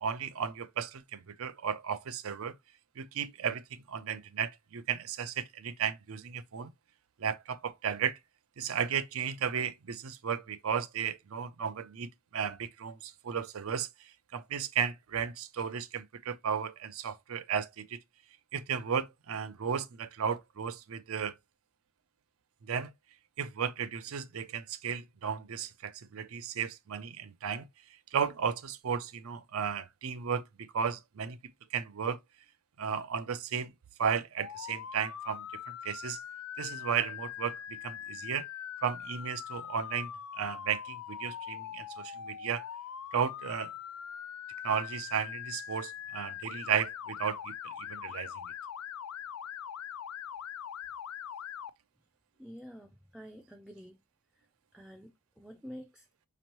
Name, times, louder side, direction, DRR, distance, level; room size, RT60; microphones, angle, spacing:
voice 1, 0.0-2.5 3.0-6.7 7.2-8.2 8.6-18.0 18.5-21.3 22.6-22.9 23.4-27.7 28.1-31.4 31.7-32.2 32.8-33.7 34.0-36.2 36.6-38.5 38.8-40.1 40.4-42.6 43.1-43.7 44.6-48.3, right 7 dB, 65° right, 0.5 m, -34 dB
Motor vehicle (road) / Siren, 34.4-51.7, left 9 dB, 70° left, 0.4 m, -42 dB
voice 2, 52.4-54.0 54.7-55.1 55.4-56.1, equal, ahead, 0.3 m, -48 dB
5.1 x 3.0 x 2.9 m
head